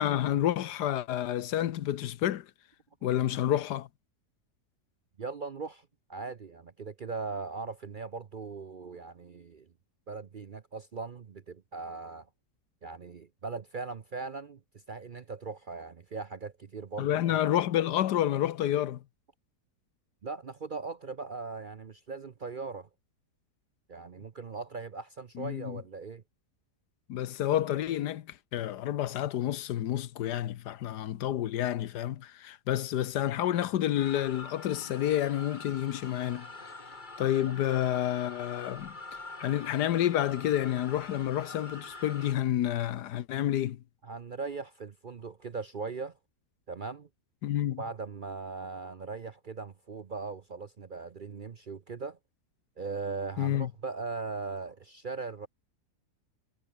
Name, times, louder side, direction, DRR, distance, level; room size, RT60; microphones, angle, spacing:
voice 1, 0.0-2.5 3.0-3.9 17.0-19.0 25.4-25.8 27.1-36.5 37.2-39.0 39.4-43.8 47.4-47.8 53.4-53.7, left 12 dB, 85° left, 1.4 m, -29 dB
voice 2, 5.2-9.7 10.1-12.3 12.8-17.4 20.2-22.9 23.9-26.2 37.5-37.6 44.0-46.2 46.7-47.1 47.8-52.2 52.8-55.5, right 4 dB, 45° right, 0.6 m, -39 dB
sound 1, 34.0-42.3, left 3 dB, 30° left, 2.4 m, -45 dB
omnidirectional pair, 1.7 m